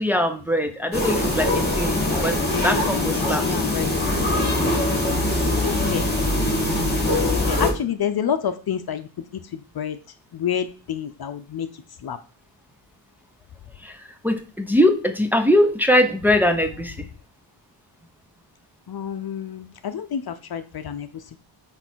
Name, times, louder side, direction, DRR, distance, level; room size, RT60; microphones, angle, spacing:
voice 1, 0.0-1.9 2.2-2.4 2.6-3.4 13.8-14.0 14.2-17.1, left 1 dB, 5° right, 5 dB, 0.8 m, -21 dB
sound 1, 0.9-7.7, left 1 dB, 20° left, 2.9 m, -22 dB
voice 2, 2.5-4.1 4.4-4.6 5.2-6.1 7.3-10.0 10.3-12.2 18.9-21.4, left 8 dB, 50° left, 10 dB, 0.8 m, -29 dB
8.8 x 3.4 x 6.2 m, 0.38 s
wide cardioid pair, 130°, 46 cm